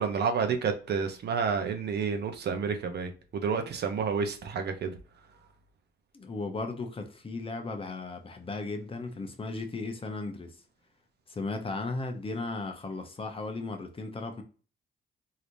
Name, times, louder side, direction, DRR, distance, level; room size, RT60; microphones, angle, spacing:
voice 1, 0.0-5.0, right 6 dB, 55° right, 0.7 m, -30 dB
voice 2, 6.1-10.5 11.3-14.4, left 3 dB, 25° left, 0.8 m, -36 dB
3.2 x 2.8 x 2.5 m
cardioid pair, 90°, 20 cm